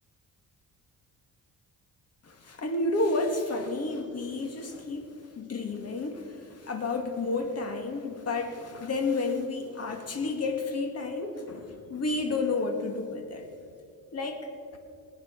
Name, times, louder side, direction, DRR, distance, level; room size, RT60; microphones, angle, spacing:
voice 1, 2.2-13.5 14.1-14.4, left 3 dB, 40° left, 4 dB, 2.2 m, -31 dB
19.5 x 9.6 x 6.1 m, 2.4 s
cardioid pair, 115°, 37 cm